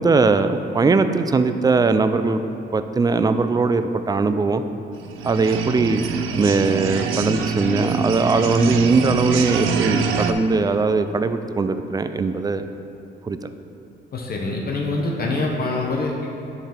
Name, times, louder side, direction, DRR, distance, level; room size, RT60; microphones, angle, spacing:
voice 1, 0.0-2.4 2.7-4.6 5.2-6.0 6.4-12.7 13.2-13.4, right 4 dB, 20° right, 10 dB, 0.3 m, -20 dB
sound 1, 5.0-10.3, right 5 dB, 85° right, 0.5 m, -25 dB
voice 2, 14.1-16.3, left 2 dB, 50° left, -1 dB, 0.9 m, -25 dB
10.0 x 4.0 x 4.3 m, 2.8 s
cardioid pair, 90°, 20 cm